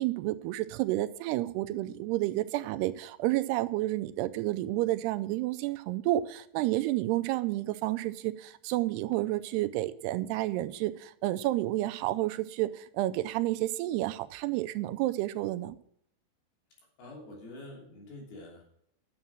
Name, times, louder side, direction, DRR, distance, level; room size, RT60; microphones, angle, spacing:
voice 1, 0.0-15.8, right 16 dB, 85° right, 2.6 m, -30 dB
voice 2, 17.0-18.6, left 1 dB, 65° left, 4.9 m, -46 dB
10.5 x 7.2 x 6.1 m
omnidirectional pair, 4.7 m